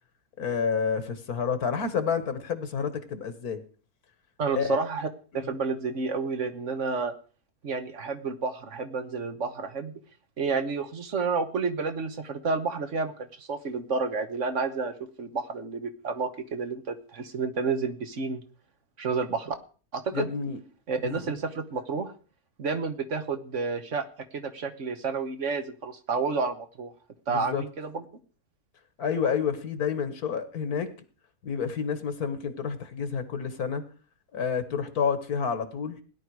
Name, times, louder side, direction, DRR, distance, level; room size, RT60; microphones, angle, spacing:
voice 1, 0.4-3.6 4.5-4.8 5.3-5.5 20.1-20.6 21.0-21.2 27.3-27.6 29.0-30.9 31.4-33.8 34.3-36.0, left 6 dB, 70° left, 10 dB, 1.8 m, -29 dB
voice 2, 4.4-5.1 5.3-7.1 7.6-9.9 10.4-18.4 19.0-19.5 19.9-20.3 20.9-22.1 22.6-24.0 24.3-26.9 27.3-28.0, right 4 dB, 50° right, 9 dB, 1.5 m, -30 dB
17.0 x 11.0 x 4.7 m, 0.39 s
omnidirectional pair, 1.7 m